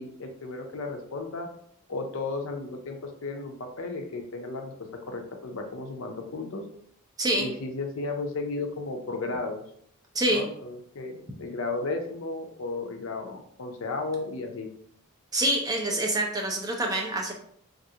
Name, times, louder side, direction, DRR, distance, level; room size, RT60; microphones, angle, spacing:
voice 1, 0.0-1.5 1.9-6.7 7.4-9.6 10.3-14.7, left 3 dB, 65° left, 4 dB, 0.5 m, -34 dB
voice 2, 15.3-17.3, right 1 dB, 15° right, 1 dB, 0.4 m, -26 dB
3.2 x 2.5 x 2.7 m, 0.65 s
head